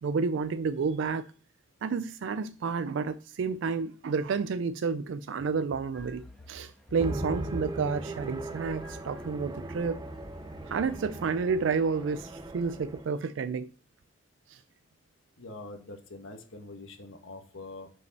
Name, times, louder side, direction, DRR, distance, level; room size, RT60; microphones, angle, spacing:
voice 1, 0.0-1.3 1.8-10.0 10.7-13.7 14.5-14.6, right 5 dB, 70° right, 0.4 m, -30 dB
sound 1, 5.4-10.8, left 1 dB, 55° left, 0.7 m, -51 dB
sound 2, 5.9-12.5, equal, ahead, 1.3 m, -58 dB
sound 3, 7.0-13.0, right 1 dB, 20° right, 0.6 m, -38 dB
voice 2, 15.4-17.9, left 2 dB, 85° left, 1.4 m, -44 dB
6.3 x 5.1 x 5.9 m
head